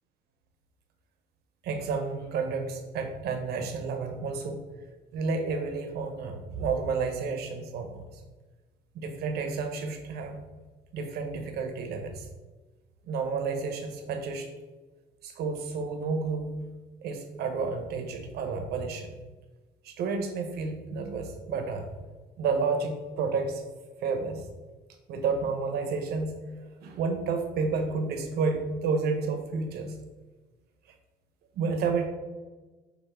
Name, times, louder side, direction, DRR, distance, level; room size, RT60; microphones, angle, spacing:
voice 1, 1.6-4.6 5.1-8.2 8.9-10.4 10.9-12.3 13.1-14.5 15.2-16.5 17.0-19.1 19.8-21.9 22.4-23.6 24.0-24.5 25.1-26.4 26.8-30.0 31.5-32.1, right 4 dB, 65° right, 5 dB, 1.0 m, -31 dB
7.0 x 2.8 x 4.9 m, 1.3 s
cardioid pair, 150°, 17 cm